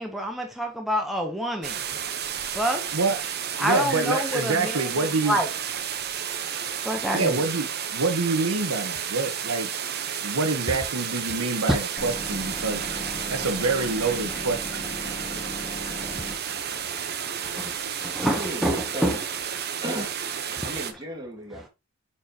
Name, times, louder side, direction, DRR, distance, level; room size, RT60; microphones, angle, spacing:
voice 1, 0.0-1.8 2.5-2.9 3.6-5.5 6.8-7.4 10.7-10.8 11.7-11.8 12.9-13.3 15.0-19.2 19.6-19.7 20.5-20.7 21.5-21.7, equal, ahead, 0.9 m, -29 dB
sound 1, 1.6-20.9, right 8 dB, 45° right, 1.0 m, -32 dB
voice 2, 3.6-5.4 7.1-9.7 10.2-12.8 13.3-14.6, right 3 dB, 75° right, 1.3 m, -26 dB
sound 2, 12.0-16.4, equal, 25° left, 1.8 m, -37 dB
voice 3, 18.3-19.2 19.8-20.2 20.6-21.7, right 1 dB, 20° right, 2.2 m, -34 dB
9.2 x 4.4 x 3.0 m
head